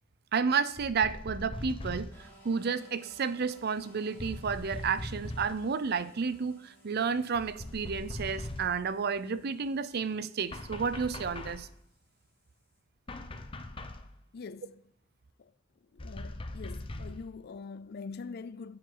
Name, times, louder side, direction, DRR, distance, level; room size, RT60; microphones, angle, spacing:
voice 1, 0.3-11.7, right 5 dB, 55° right, 0.5 m, -31 dB
sound 1, 0.8-2.3 4.2-5.6 7.4-8.8 10.5-11.7 13.1-14.1 16.0-17.3, left 1 dB, 25° left, 0.8 m, -41 dB
sound 2, 2.1-12.8, right 1 dB, 10° left, 4.7 m, -61 dB
voice 2, 14.3-14.8 15.4-15.5 15.9-18.8, left 4 dB, 55° left, 0.4 m, -44 dB
14.5 x 7.8 x 3.9 m
head